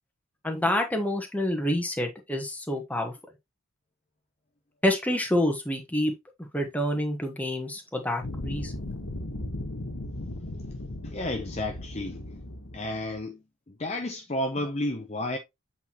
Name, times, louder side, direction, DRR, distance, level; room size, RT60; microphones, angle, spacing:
voice 1, 0.4-3.1 4.8-6.1 6.4-8.7, left 1 dB, 5° left, 1.1 m, -27 dB
sound 1, 8.2-13.2, left 1 dB, 65° left, 1.3 m, -37 dB
voice 2, 11.0-12.2 12.7-15.4, left 1 dB, 30° left, 0.6 m, -32 dB
8.0 x 4.2 x 2.9 m
head